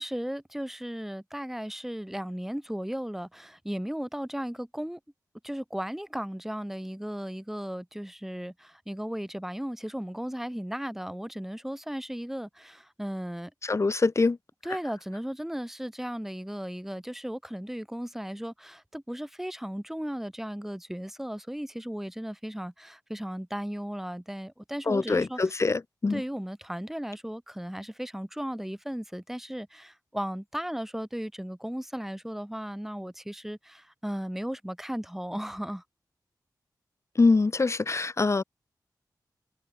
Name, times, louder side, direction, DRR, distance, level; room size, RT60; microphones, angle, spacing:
voice 1, 0.0-5.0 5.4-13.5 14.6-25.4 26.1-35.8, equal, 5° right, 4.6 m, -36 dB
voice 2, 13.6-14.4 24.9-26.2 37.2-38.4, left 3 dB, 40° left, 2.5 m, -24 dB
wide cardioid pair, 90°, 7 cm